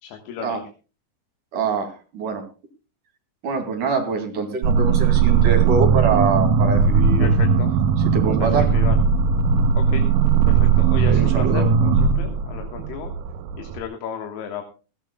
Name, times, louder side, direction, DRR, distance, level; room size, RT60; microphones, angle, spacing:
voice 1, 0.0-0.6 7.2-7.7 8.6-9.0 9.8-10.0 10.5-13.1 13.6-14.6, left 8 dB, 80° left, 4 dB, 3.5 m, -34 dB
voice 2, 1.5-2.4 3.4-7.3 8.0-8.7 11.1-11.7, right 4 dB, 55° right, 4 dB, 3.9 m, -24 dB
sound 1, 4.6-13.8, right 6 dB, 80° right, 1.8 m, -18 dB
20.5 x 16.0 x 2.3 m, 0.33 s
omnidirectional pair, 4.6 m